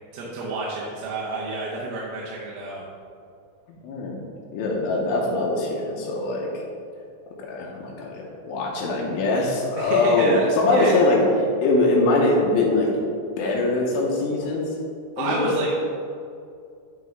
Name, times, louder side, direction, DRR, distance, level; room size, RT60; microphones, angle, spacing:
voice 1, 0.1-2.8 9.8-10.9 15.2-15.7, right 2 dB, 85° right, -5 dB, 3.0 m, -29 dB
voice 2, 3.7-4.1 4.5-6.5 7.4-11.2 11.6-12.9 13.4-14.7 15.2-15.6, left 2 dB, 90° left, -2 dB, 3.0 m, -22 dB
10.5 x 3.7 x 3.6 m, 2.4 s
omnidirectional pair, 4.8 m